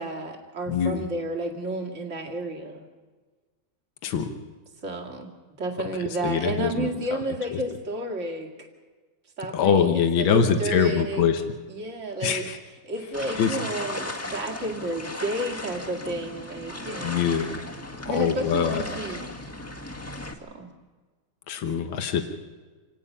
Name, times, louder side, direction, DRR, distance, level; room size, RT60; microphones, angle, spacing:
voice 1, 0.0-2.9 4.8-8.7 9.4-11.3 11.7-12.5 12.8-17.3 18.1-19.3 20.4-20.7, right 2 dB, 40° right, 2 dB, 2.4 m, -31 dB
voice 2, 0.7-1.1 4.0-4.3 6.2-7.2 7.5-7.6 9.5-11.4 12.2-12.6 13.4-13.6 17.0-17.5 18.1-18.8 21.5-22.2, left 7 dB, 80° left, 6 dB, 1.9 m, -23 dB
sound 1, 13.1-20.3, left 2 dB, 10° left, 1.6 m, -36 dB
26.5 x 18.5 x 5.6 m, 1.4 s
omnidirectional pair, 2.1 m